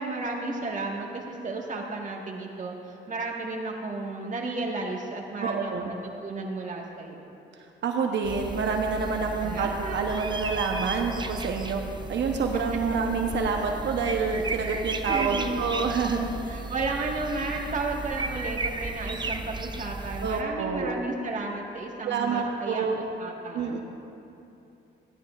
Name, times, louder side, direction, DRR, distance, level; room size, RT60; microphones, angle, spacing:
voice 1, 0.0-6.0 6.2-7.4 9.4-10.3 12.5-12.6 15.1-16.0 16.5-23.8, right 3 dB, 40° right, -1 dB, 1.6 m, -33 dB
voice 2, 5.4-5.9 7.8-11.8 12.1-16.3 20.2-20.9 22.0-23.0 23.5-23.8, right 5 dB, 65° right, 2 dB, 0.9 m, -27 dB
sound 1, 8.2-20.4, right 3 dB, 25° right, 0.6 m, -35 dB
16.0 x 11.0 x 2.5 m, 2.8 s
cardioid pair, 90°, 20 cm